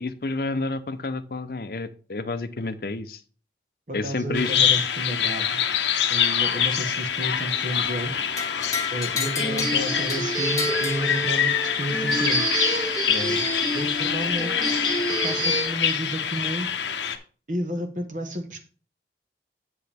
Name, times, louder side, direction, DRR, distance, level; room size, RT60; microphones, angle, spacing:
voice 1, 0.0-3.2 3.9-4.5, left 3 dB, 55° left, 10 dB, 0.7 m, -29 dB
voice 2, 3.9-5.6 6.1-8.1 8.9-12.5 13.1-13.4 13.7-14.5 15.2-16.8 17.5-18.6, right 1 dB, 45° right, 5 dB, 1.3 m, -31 dB
Bird vocalization bird call bird song, 4.3-17.2, left 8 dB, 85° left, 0.9 m, -25 dB
sound 1, 7.4-15.6, right 1 dB, 25° right, 1.9 m, -29 dB
sound 2, 8.4-11.7, left 6 dB, 20° left, 1.4 m, -32 dB
7.9 x 7.1 x 3.5 m, 0.39 s
head